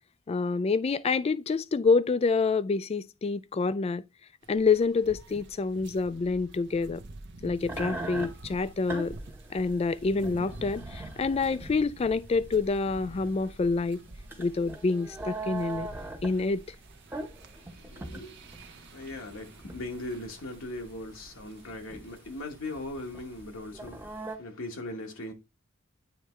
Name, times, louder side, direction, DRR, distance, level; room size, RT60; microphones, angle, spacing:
voice 1, 0.3-4.0 4.5-7.0 7.4-9.2 9.5-14.0 14.4-15.9 16.2-16.6, left 4 dB, 30° left, 0.3 m, -27 dB
sound 1, 4.4-23.4, right 2 dB, 55° right, 0.8 m, -48 dB
sound 2, 7.6-24.4, right 2 dB, 10° right, 1.0 m, -41 dB
voice 2, 17.6-25.3, left 2 dB, 65° left, 1.1 m, -40 dB
9.2 x 3.4 x 3.0 m
head